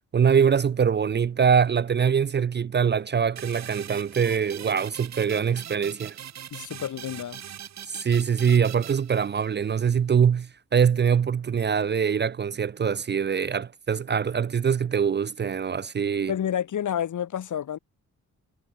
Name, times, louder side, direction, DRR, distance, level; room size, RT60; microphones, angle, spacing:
voice 1, 0.1-6.2 7.9-16.3, right 7 dB, 30° right, 0.5 m, -23 dB
sound 1, 3.4-9.7, right 10 dB, 55° right, 1.0 m, -41 dB
voice 2, 6.5-7.4 16.3-17.8, left 9 dB, 65° left, 2.4 m, -29 dB
wide cardioid pair, 165°, 33 cm